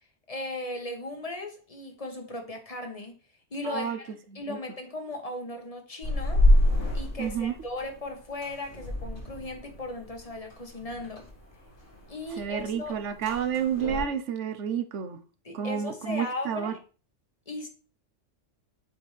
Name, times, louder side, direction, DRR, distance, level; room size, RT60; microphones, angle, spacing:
voice 1, 0.3-3.1 3.5-6.4 6.9-11.2 12.1-13.0 15.4-16.8 17.5-17.7, left 2 dB, 30° left, 1.2 m, -37 dB
voice 2, 3.6-4.0 4.3-4.6 7.2-7.5 12.4-15.2 15.5-16.7, right 8 dB, 70° right, 1.1 m, -30 dB
sound 1, 6.0-14.0, left 1 dB, 80° left, 3.8 m, -28 dB
8.2 x 4.3 x 3.2 m
omnidirectional pair, 1.3 m